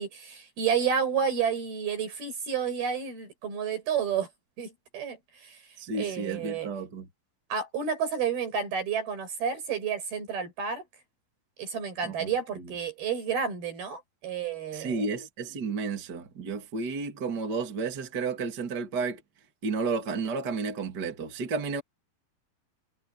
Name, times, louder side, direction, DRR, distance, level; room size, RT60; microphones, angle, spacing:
voice 1, 0.0-4.3 4.6-5.6 5.9-6.7 7.5-10.9 11.6-15.1, right 7 dB, 80° right, 7.9 m, -30 dB
voice 2, 5.8-7.1 12.0-12.3 14.7-19.2 19.6-21.8, right 4 dB, 30° right, 2.8 m, -32 dB
omnidirectional pair, 4.3 m